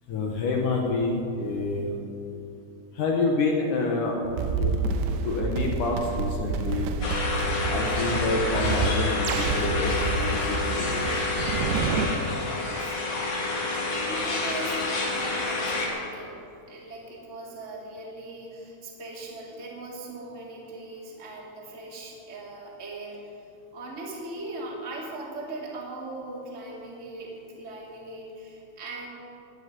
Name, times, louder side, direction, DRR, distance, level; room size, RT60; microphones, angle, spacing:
voice 1, 0.1-1.9 3.0-4.1 4.6-6.9 7.5-11.2, left 3 dB, 70° left, 0 dB, 2.0 m, -28 dB
sound 1, 4.2-12.1, right 4 dB, 85° right, 2.8 m, -29 dB
sound 2, 7.0-15.9, left 3 dB, 45° left, 2.2 m, -28 dB
voice 2, 12.1-16.4 16.7-23.3 23.7-29.1, right 2 dB, 25° right, -4 dB, 1.8 m, -39 dB
17.5 x 10.5 x 5.4 m, 2.7 s
omnidirectional pair, 5.3 m